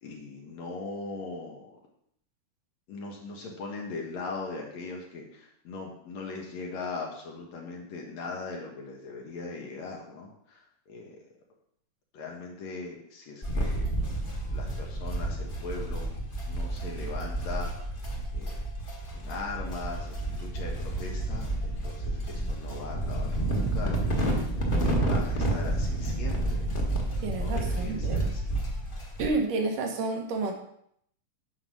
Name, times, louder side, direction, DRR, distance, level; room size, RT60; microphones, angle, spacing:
voice 1, 0.0-1.8 2.9-11.2 12.1-13.9 14.5-16.1 16.5-17.7 18.3-18.6 19.1-24.8 25.0-26.6 26.9-28.6, left 3 dB, 60° left, 0 dB, 2.3 m, -40 dB
sound 1, 13.4-29.3, right 1 dB, 85° left, 0.4 m, -30 dB
voice 2, 27.2-28.3 29.2-30.5, right 3 dB, 75° right, 2 dB, 2.8 m, -30 dB
9.5 x 4.8 x 6.2 m, 0.70 s
omnidirectional pair, 3.9 m